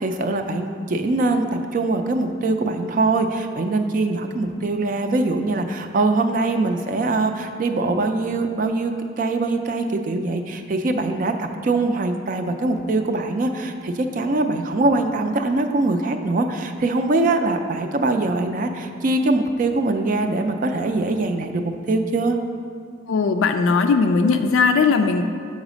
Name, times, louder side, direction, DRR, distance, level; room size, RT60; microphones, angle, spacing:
voice 1, 0.0-22.4, right 2 dB, 45° right, 6 dB, 0.4 m, -22 dB
voice 2, 23.1-25.2, left 4 dB, 80° left, 6 dB, 0.3 m, -18 dB
7.1 x 4.1 x 5.0 m, 2.2 s
head